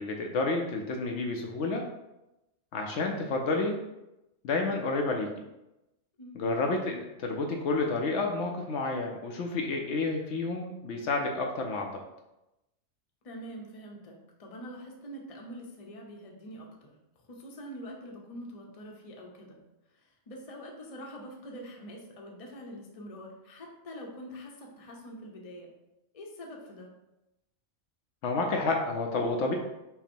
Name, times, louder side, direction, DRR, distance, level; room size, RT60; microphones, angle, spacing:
voice 1, 0.0-1.8 2.7-3.8 4.4-5.3 6.3-12.0 28.2-29.6, left 3 dB, 70° left, 1 dB, 0.9 m, -30 dB
voice 2, 13.2-14.1 14.4-16.9 17.3-19.6 20.0-25.7 26.1-26.9, equal, 35° left, 0 dB, 0.7 m, -44 dB
5.7 x 2.1 x 4.3 m, 0.94 s
omnidirectional pair, 1.3 m